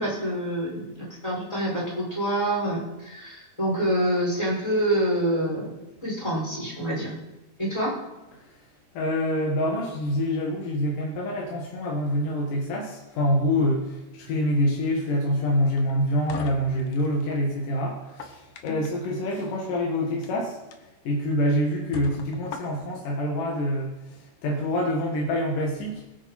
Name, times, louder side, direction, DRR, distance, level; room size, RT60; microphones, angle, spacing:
voice 1, 0.0-7.2 7.6-8.0 18.6-18.8, right 1 dB, 10° left, -6 dB, 5.7 m, -27 dB
voice 2, 8.3-8.7 8.9-26.0, left 1 dB, 85° left, -1 dB, 3.3 m, -26 dB
sound 1, 15.8-17.4 18.0-19.1 20.1-20.3 20.7-20.8 21.3-21.4 21.9-23.0, left 5 dB, 60° left, 1.7 m, -40 dB
21.5 x 9.3 x 4.3 m, 1.0 s
omnidirectional pair, 3.7 m